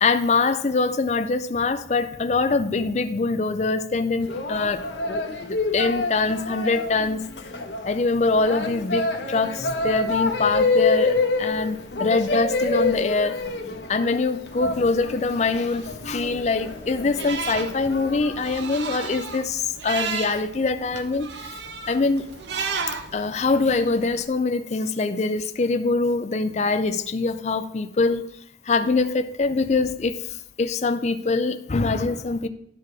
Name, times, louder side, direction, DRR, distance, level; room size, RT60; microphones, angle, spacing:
voice 1, 0.0-4.8 5.1-7.2 7.9-13.4 13.9-21.6 21.9-22.3 23.1-28.3 28.6-32.5, left 3 dB, 40° left, 10 dB, 0.4 m, -24 dB
sound 1, 4.2-18.5, left 3 dB, 70° left, 1.1 m, -27 dB
sound 2, 14.5-24.2, right 5 dB, 75° right, 0.8 m, -35 dB
11.0 x 4.7 x 4.8 m, 0.72 s
head